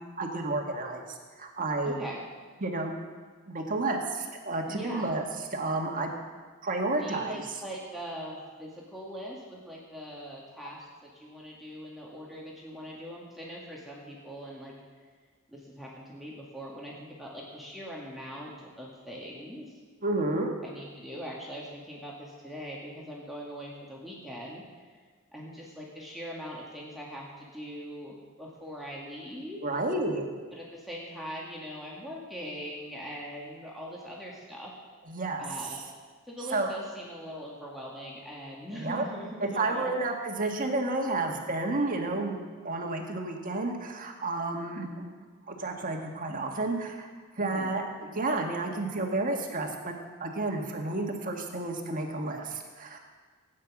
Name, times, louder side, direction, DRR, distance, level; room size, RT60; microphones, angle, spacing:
voice 1, 0.2-2.0 2.6-2.9 3.5-5.2 5.5-6.1 6.6-7.6 20.0-20.5 29.6-30.3 35.1-35.4 36.5-36.7 38.8-39.0 39.4-45.1 45.5-47.1 47.3-53.0, right 2 dB, 40° right, 2 dB, 1.7 m, -31 dB
voice 2, 1.8-2.2 4.7-5.2 7.0-14.7 15.5-19.8 20.6-24.6 25.3-29.7 30.5-34.7 35.4-35.8 36.3-40.0 47.4-47.7, equal, ahead, -5 dB, 1.8 m, -41 dB
16.5 x 9.4 x 6.1 m, 1.5 s
head